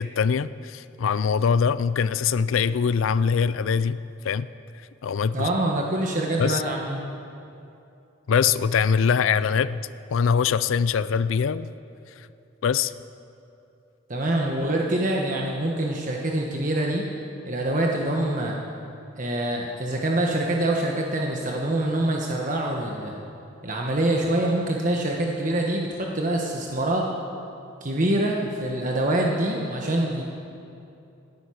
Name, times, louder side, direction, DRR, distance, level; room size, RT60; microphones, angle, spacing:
voice 1, 0.0-4.0 4.2-4.5 5.0-5.5 6.4-6.6 8.3-9.8 10.1-11.7 12.6-12.9, left 6 dB, 85° left, 16 dB, 0.4 m, -23 dB
voice 2, 5.3-7.0 14.1-17.0 17.5-18.6 19.1-23.2 23.6-27.1 27.8-30.2, right 1 dB, 40° right, -1 dB, 1.2 m, -25 dB
18.5 x 10.5 x 6.4 m, 2.7 s
head